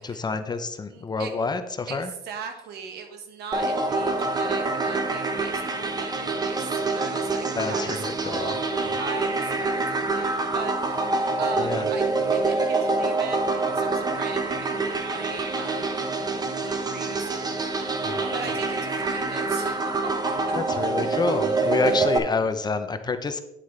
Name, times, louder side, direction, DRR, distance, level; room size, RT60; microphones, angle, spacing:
voice 1, 0.0-2.1 7.5-8.5 11.6-11.9 18.0-18.3 20.5-23.4, left 4 dB, 25° left, 9 dB, 0.7 m, -28 dB
voice 2, 0.9-1.3 1.9-12.0 12.3-16.0 16.5-20.1, right 5 dB, 75° right, 5 dB, 1.6 m, -39 dB
sound 1, 3.5-22.2, right 3 dB, 25° right, 1.0 m, -26 dB
9.2 x 7.8 x 3.3 m, 0.87 s
cardioid pair, 110°, 17 cm